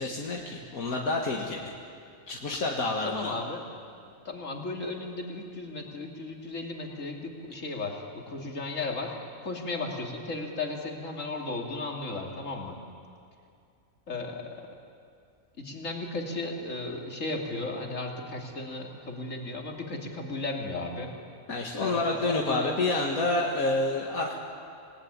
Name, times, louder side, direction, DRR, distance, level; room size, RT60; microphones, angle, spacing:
voice 1, 0.0-1.7 2.3-3.3 21.5-24.3, left 2 dB, 80° left, -1 dB, 2.3 m, -28 dB
voice 2, 3.0-3.6 4.2-9.2 9.4-12.8 14.1-14.7 15.6-21.1 21.8-22.7, left 2 dB, 60° left, 1 dB, 3.2 m, -35 dB
26.5 x 19.5 x 9.8 m, 2.4 s
omnidirectional pair, 1.5 m